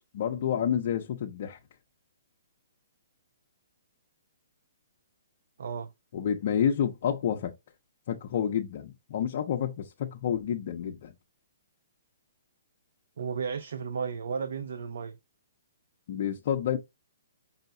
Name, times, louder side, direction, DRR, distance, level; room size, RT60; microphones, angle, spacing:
voice 1, 0.1-1.6 6.1-7.5 8.1-11.1 16.1-16.8, left 9 dB, 40° left, 0.6 m, -29 dB
voice 2, 5.6-5.9 13.2-15.2, right 6 dB, 65° right, 0.4 m, -33 dB
5.5 x 2.2 x 3.7 m
hypercardioid pair, 170°, 0 cm